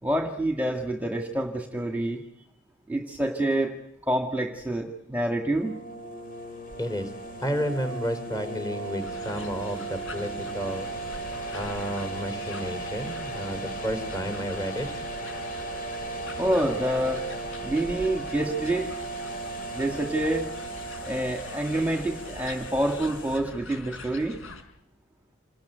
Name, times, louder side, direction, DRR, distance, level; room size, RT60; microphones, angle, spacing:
voice 1, 0.0-2.2 2.9-3.7 4.1-5.8 16.4-17.2 17.6-19.0 19.7-20.5 21.0-24.4, right 1 dB, 10° right, 3 dB, 1.9 m, -27 dB
sound 1, 5.5-23.4, right 2 dB, 45° left, 6.6 m, -36 dB
voice 2, 6.8-7.1 7.4-10.9 11.5-14.9, equal, 20° left, 9 dB, 3.9 m, -31 dB
sound 2, 9.0-24.6, left 2 dB, 70° left, 4.9 m, -43 dB
28.0 x 19.5 x 9.3 m, 0.75 s
head